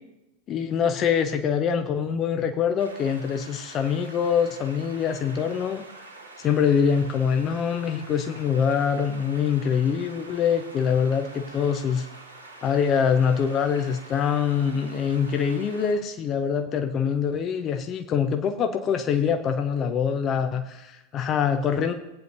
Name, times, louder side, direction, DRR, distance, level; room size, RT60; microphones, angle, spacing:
voice 1, 0.5-5.8 6.4-12.1 12.6-21.9, left 7 dB, 30° left, 7 dB, 0.6 m, -24 dB
sound 1, 2.8-15.9, right 2 dB, 80° right, 1.7 m, -46 dB
18.5 x 9.1 x 2.6 m, 0.97 s
figure-of-eight pair, 90°, 0 cm